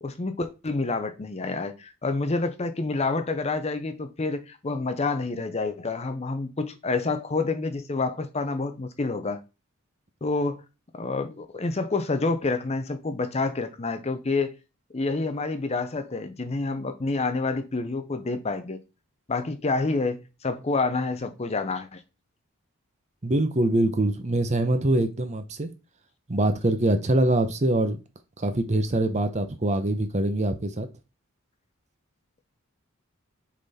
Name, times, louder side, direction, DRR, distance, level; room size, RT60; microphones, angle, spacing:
voice 1, 0.0-9.4 10.2-10.6 10.9-14.5 14.9-18.8 19.3-22.0, left 3 dB, 30° left, 0.6 m, -28 dB
voice 2, 23.2-25.7 26.3-28.0 28.4-30.9, right 1 dB, 30° right, 0.8 m, -24 dB
6.3 x 3.9 x 4.2 m
head